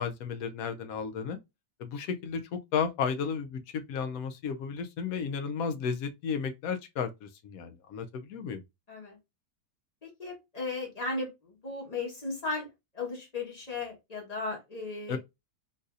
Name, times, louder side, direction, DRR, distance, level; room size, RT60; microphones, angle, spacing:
voice 1, 0.0-1.4 1.8-8.6 15.1-15.2, left 6 dB, 70° left, 0.9 m, -33 dB
voice 2, 10.0-12.7 12.9-15.2, left 3 dB, 25° left, 1.1 m, -36 dB
3.9 x 2.6 x 2.4 m
omnidirectional pair, 1.8 m